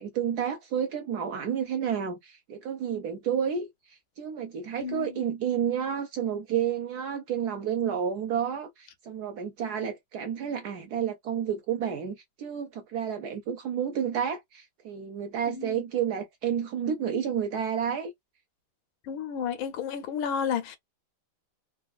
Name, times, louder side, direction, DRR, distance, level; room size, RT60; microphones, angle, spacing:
voice 1, 0.0-18.1, right 8 dB, 70° right, 0.9 m, -30 dB
voice 2, 4.8-5.2 15.5-15.8 19.0-20.8, left 7 dB, 90° left, 1.6 m, -32 dB
3.9 x 2.3 x 2.5 m
omnidirectional pair, 2.2 m